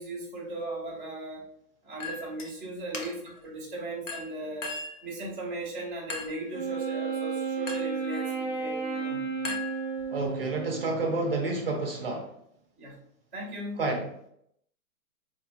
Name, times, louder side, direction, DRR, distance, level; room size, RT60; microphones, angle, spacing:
voice 1, 0.0-1.4 1.8-4.7 5.0-9.6 12.8-13.0 13.3-13.8, right 2 dB, 5° left, -8 dB, 0.6 m, -37 dB
Chink clink, 2.0-2.5 2.9-3.4 4.1-5.0 6.1-6.5 7.7-8.0 9.4-10.2, left 4 dB, 60° left, 0.8 m, -38 dB
Wind instrument woodwind instrument, 6.5-11.0, right 5 dB, 35° left, 1.1 m, -33 dB
voice 2, 10.1-12.3 13.8-14.1, right 3 dB, 45° right, 2 dB, 0.5 m, -29 dB
4.2 x 2.5 x 2.8 m, 0.71 s
hypercardioid pair, 175°, 43 cm